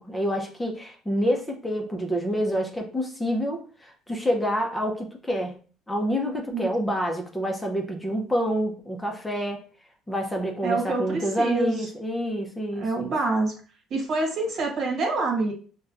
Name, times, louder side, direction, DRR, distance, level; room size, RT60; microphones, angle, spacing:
voice 1, 0.0-5.6 5.9-9.6 10.1-13.1, equal, 10° left, 1 dB, 0.7 m, -27 dB
voice 2, 10.6-11.9 12.7-13.5 13.9-15.5, right 3 dB, 55° right, 1 dB, 1.5 m, -26 dB
5.5 x 2.2 x 2.5 m, 0.40 s
cardioid pair, 100°, 0 cm